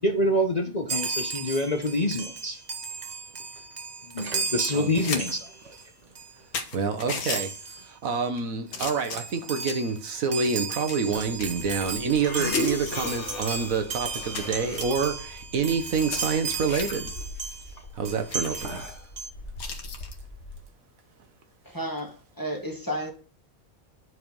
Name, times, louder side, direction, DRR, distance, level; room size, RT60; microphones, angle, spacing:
voice 1, 0.0-2.6 4.0-5.7, left 1 dB, 35° left, 0.9 m, -26 dB
Chime, 0.9-5.8 6.1-6.4 7.3-7.9 8.4-8.5 8.7-17.7 18.0-19.3, right 4 dB, 35° right, 0.8 m, -35 dB
sound 1, 4.7-5.2 5.6-5.7 6.2-6.3 6.5-7.4 8.1-8.4 8.7-9.9 10.4-12.3 12.5-12.7 13.3-13.4 13.7-13.8 14.3-14.8 15.7-17.0 17.4-17.5 17.8-17.9 18.3-18.7 19.6-20.2 21.9-22.1, left 5 dB, 80° left, 1.7 m, -36 dB
voice 2, 6.7-7.5 7.8-17.1 18.0-18.8, right 5 dB, 70° right, 1.5 m, -27 dB
sound 2, 11.2-20.6, left 3 dB, 55° left, 1.5 m, -38 dB
voice 3, 21.7-23.1, equal, 15° left, 1.4 m, -32 dB
9.8 x 4.7 x 5.3 m
omnidirectional pair, 1.5 m